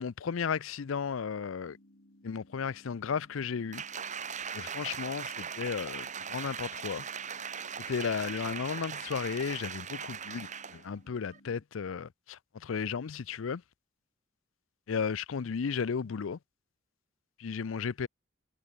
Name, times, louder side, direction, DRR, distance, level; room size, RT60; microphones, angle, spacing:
voice 1, 0.0-1.8 2.2-3.8 4.5-7.0 7.9-13.6 14.9-16.4 17.4-18.1, left 6 dB, 75° left, 0.5 m, -34 dB
sound 1, 1.6-11.6, left 1 dB, 55° left, 3.5 m, -60 dB
Applause, 3.7-10.9 11.3-11.4, right 7 dB, 40° right, 1.8 m, -39 dB
head